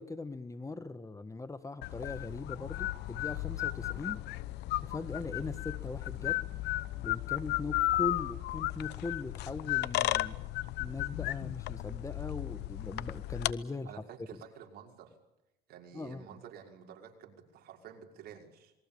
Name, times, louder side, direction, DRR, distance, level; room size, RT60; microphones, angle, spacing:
voice 1, 0.0-4.2 4.8-6.4 7.0-10.4 10.8-13.9 15.9-16.3, left 3 dB, 20° left, 12 dB, 1.7 m, -40 dB
sound 1, 1.8-13.5, left 16 dB, 85° left, 0.9 m, -34 dB
sound 2, 6.1-12.6, left 9 dB, 60° left, 6.8 m, -60 dB
voice 2, 13.8-15.2 15.7-18.7, right 8 dB, 70° right, 2 dB, 5.7 m, -50 dB
27.5 x 22.5 x 7.2 m, 0.92 s
cardioid pair, 110°, 17 cm